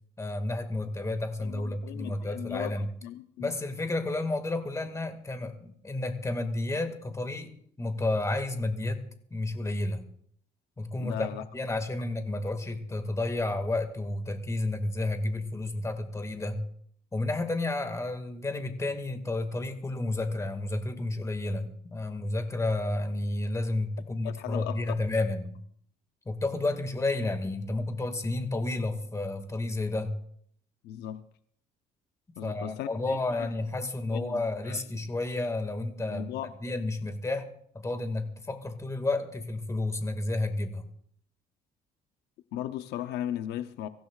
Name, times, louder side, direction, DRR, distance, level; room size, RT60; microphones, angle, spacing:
voice 1, 0.2-2.9 3.4-7.5 7.8-9.0 9.3-10.0 10.8-11.3 11.5-16.6 17.1-25.6 26.3-30.1 32.4-36.3 36.6-37.5 37.7-40.9, left 2 dB, 15° left, 1.9 m, -31 dB
voice 2, 1.4-2.7 3.0-3.5 11.0-11.4 24.2-25.2 30.8-31.2 32.4-33.5 34.1-34.8 36.0-36.5 42.5-43.9, left 11 dB, 80° left, 0.7 m, -37 dB
24.5 x 15.5 x 2.4 m
cardioid pair, 110°, 17 cm